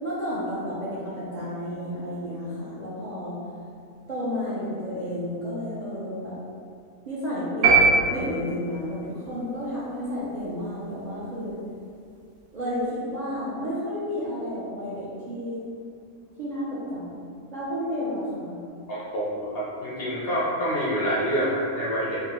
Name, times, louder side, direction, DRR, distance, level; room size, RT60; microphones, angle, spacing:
voice 1, 0.0-3.4 4.1-6.4 7.1-11.6 12.5-15.6 16.4-17.2 17.5-18.6, equal, 60° right, -10 dB, 0.4 m, -31 dB
sound 1, 7.6-8.9, right 4 dB, 85° right, 1.2 m, -20 dB
voice 2, 18.9-22.2, equal, 65° left, -7 dB, 0.6 m, -27 dB
3.6 x 2.2 x 2.9 m, 2.4 s
omnidirectional pair, 1.6 m